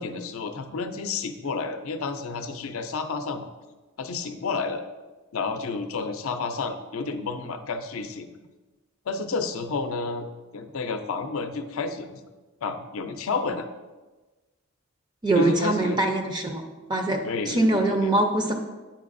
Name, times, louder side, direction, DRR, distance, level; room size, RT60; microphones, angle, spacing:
voice 1, 0.0-3.5 4.0-4.8 5.3-8.3 9.1-12.2 12.6-13.7 15.3-16.0 17.2-18.1, left 4 dB, 75° left, 8 dB, 0.5 m, -30 dB
voice 2, 15.2-16.6 16.9-18.5, right 2 dB, 20° right, 4 dB, 0.4 m, -23 dB
8.8 x 4.7 x 2.5 m, 1.2 s
head